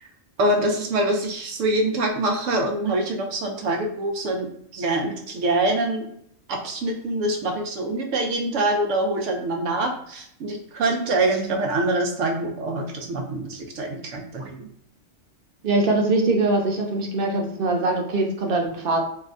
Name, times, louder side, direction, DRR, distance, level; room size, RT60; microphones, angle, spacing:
voice 1, 0.4-6.1 6.5-14.7, right 2 dB, 85° right, 2 dB, 1.0 m, -25 dB
voice 2, 15.6-19.0, right 2 dB, 60° right, 2 dB, 0.7 m, -22 dB
3.2 x 2.7 x 2.5 m, 0.66 s
omnidirectional pair, 1.2 m